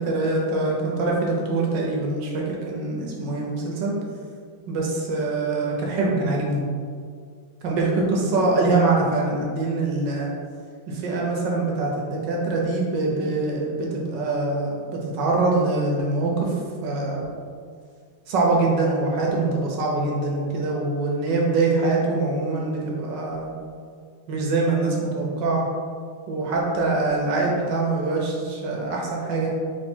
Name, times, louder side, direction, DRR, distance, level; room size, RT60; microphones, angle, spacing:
voice 1, 0.0-3.9 4.7-6.6 7.6-10.3 11.0-16.5 16.8-17.2 18.3-23.5 24.3-25.6 26.3-29.5, right 3 dB, 70° right, -2 dB, 1.3 m, -24 dB
3.3 x 3.2 x 4.2 m, 2.1 s
omnidirectional pair, 2.2 m